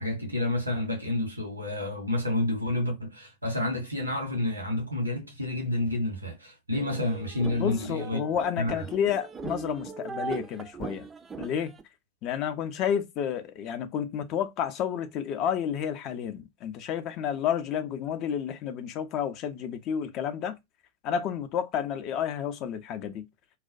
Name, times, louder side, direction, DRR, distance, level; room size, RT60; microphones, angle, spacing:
voice 1, 0.0-8.2 8.6-8.8, left 1 dB, 85° right, 1.1 m, -29 dB
sound 1, 6.7-11.8, right 5 dB, 20° right, 0.4 m, -39 dB
voice 2, 7.5-11.1 11.4-11.7 12.2-20.6 21.0-23.3, left 8 dB, 40° left, 0.5 m, -30 dB
2.3 x 2.1 x 2.5 m
figure-of-eight pair, 90°, 0 cm